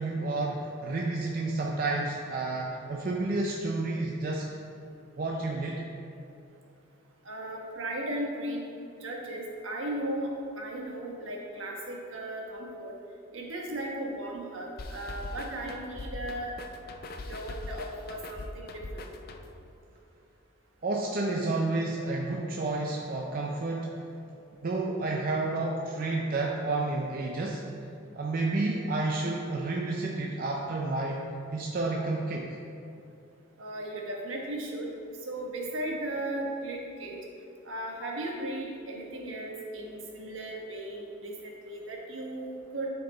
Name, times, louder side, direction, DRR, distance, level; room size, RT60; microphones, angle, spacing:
voice 1, 0.0-4.5 5.2-5.8 20.8-24.0 24.6-27.6 28.1-31.2 31.5-32.6, right 2 dB, 45° right, -1 dB, 0.5 m, -30 dB
voice 2, 7.2-8.6 9.0-12.9 13.3-16.5 17.3-19.1 33.6-34.9 35.2-37.2 37.6-42.9, right 1 dB, 70° right, -1 dB, 1.2 m, -36 dB
sound 1, 14.8-19.7, left 2 dB, 45° left, 0.4 m, -41 dB
9.4 x 4.4 x 3.9 m, 2.7 s
head